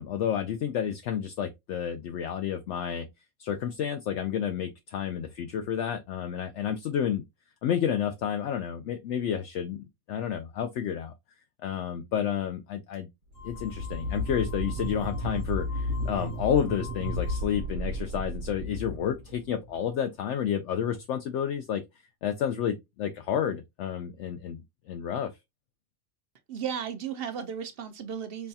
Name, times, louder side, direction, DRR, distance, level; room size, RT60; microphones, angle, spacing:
voice 1, 0.0-3.1 3.4-7.2 7.6-11.1 11.6-13.1 13.4-24.6 24.9-25.3, left 8 dB, 70° left, 0.8 m, -30 dB
sound 1, 13.3-17.7, left 9 dB, 85° left, 1.8 m, -48 dB
sound 2, 13.3-19.8, left 1 dB, 75° right, 1.0 m, -33 dB
voice 2, 26.5-28.5, right 8 dB, 55° right, 0.7 m, -35 dB
5.5 x 2.3 x 2.7 m
omnidirectional pair, 1.3 m